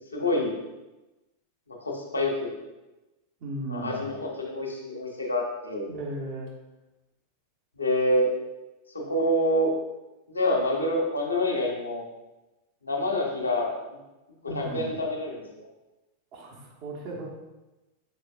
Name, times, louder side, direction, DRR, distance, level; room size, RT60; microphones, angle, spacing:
voice 1, 0.1-0.5 1.7-2.5 3.7-5.9 7.8-8.3 8.9-9.7 10.3-12.0 12.8-13.7 14.4-15.7, left 1 dB, 80° left, -2 dB, 1.3 m, -27 dB
voice 2, 3.4-4.1 5.9-6.5 14.5-14.9 16.3-17.3, right 2 dB, 40° right, -2 dB, 1.5 m, -36 dB
7.4 x 5.0 x 2.6 m, 1.0 s
figure-of-eight pair, 90°, 0 cm